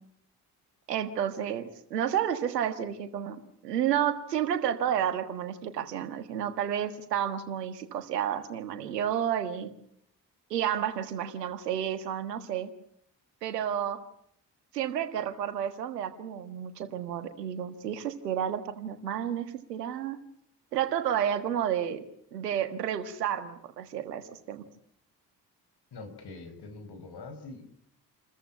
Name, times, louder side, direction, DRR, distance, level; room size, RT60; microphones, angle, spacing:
voice 1, 0.9-9.7 10.5-12.7 13.4-14.0 14.7-20.2 20.7-22.0 22.3-24.6, right 9 dB, 85° right, 10 dB, 1.6 m, -31 dB
voice 2, 25.9-27.7, left 3 dB, 55° left, 7 dB, 5.4 m, -44 dB
28.5 x 14.0 x 9.8 m, 0.71 s
figure-of-eight pair, 40°, 47 cm